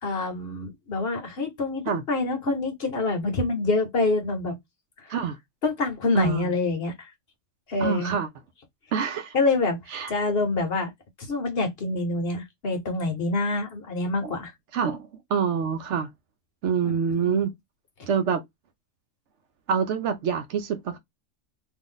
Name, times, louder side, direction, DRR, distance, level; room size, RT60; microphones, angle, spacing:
voice 1, 0.0-4.6 5.0-5.1 5.6-7.1 7.7-8.1 9.3-9.8 10.1-10.9 11.2-14.5 17.1-17.4, left 3 dB, 50° left, 1.0 m, -26 dB
voice 2, 6.1-6.5 7.8-8.3 8.9-9.4 9.9-10.1 14.2-14.3 14.7-16.1 16.6-17.5 18.1-18.4 19.7-21.0, right 7 dB, 70° right, 0.8 m, -26 dB
2.5 x 2.5 x 3.7 m
omnidirectional pair, 1.4 m